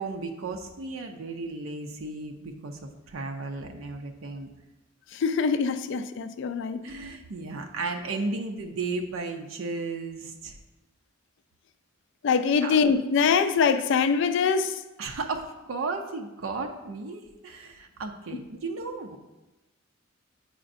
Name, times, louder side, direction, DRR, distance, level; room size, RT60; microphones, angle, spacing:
voice 1, 0.0-4.5 6.8-10.6 12.6-12.8 15.0-19.2, right 3 dB, 80° right, 0.5 m, -34 dB
voice 2, 5.1-6.9 12.2-14.8 18.3-18.4, left 5 dB, 65° left, 0.4 m, -24 dB
8.6 x 5.0 x 2.6 m
head